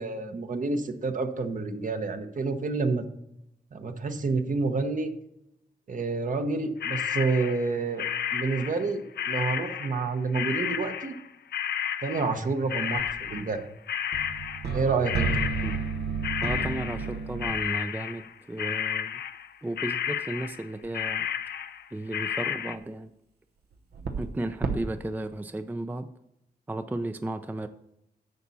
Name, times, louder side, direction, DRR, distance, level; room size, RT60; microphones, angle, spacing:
voice 1, 0.0-3.0 3.7-5.1 5.9-8.1 8.3-11.1 12.0-13.6 14.7-15.4, right 4 dB, 50° right, 7 dB, 1.0 m, -29 dB
sound 1, 6.8-8.9 9.2-16.0 16.2-19.5 19.8-20.7 20.9-22.8, left 9 dB, 90° left, 0.6 m, -32 dB
sound 2, 13.0-13.4 14.1-17.8 20.8-20.9 23.7-24.3 24.6-24.8, right 5 dB, 80° right, 1.0 m, -31 dB
voice 2, 16.4-19.1 19.6-21.3 21.9-23.1 24.2-26.1 26.7-27.7, right 2 dB, 10° right, 9 dB, 0.4 m, -34 dB
10.5 x 7.1 x 4.1 m, 0.81 s
wide cardioid pair, 110°, 17 cm